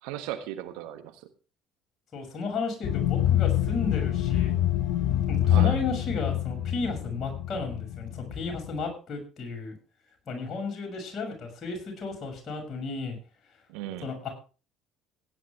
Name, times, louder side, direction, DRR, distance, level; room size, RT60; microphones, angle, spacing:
voice 1, 0.0-1.3 5.4-5.8 13.7-14.1, right 12 dB, 70° right, 8 dB, 1.3 m, -37 dB
voice 2, 2.1-4.5 5.3-9.7 10.3-13.2 14.0-14.3, left 4 dB, 45° left, 2 dB, 6.5 m, -33 dB
sound 1, 2.8-8.8, left 12 dB, 65° left, 1.1 m, -26 dB
17.0 x 10.5 x 3.4 m, 0.35 s
figure-of-eight pair, 55°, 0 cm